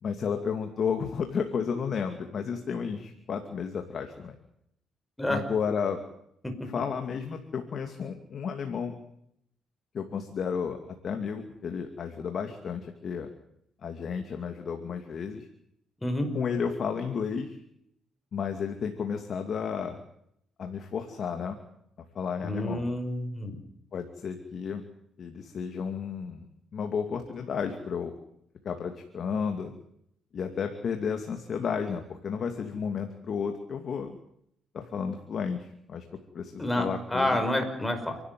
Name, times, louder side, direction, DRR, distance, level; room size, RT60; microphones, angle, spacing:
voice 1, 0.0-4.4 5.3-6.0 6.7-9.0 9.9-13.3 13.8-15.5 16.3-17.6 18.3-20.0 20.6-21.6 22.1-22.8 23.9-24.8 25.2-26.5 26.7-28.1 28.6-29.7 30.3-34.2 34.7-36.0 36.3-37.4, left 6 dB, 55° left, 5 dB, 2.6 m, -32 dB
voice 2, 22.4-23.6 36.6-38.2, left 1 dB, 10° left, 5 dB, 5.6 m, -28 dB
28.5 x 12.5 x 9.5 m, 0.75 s
cardioid pair, 90°, 0 cm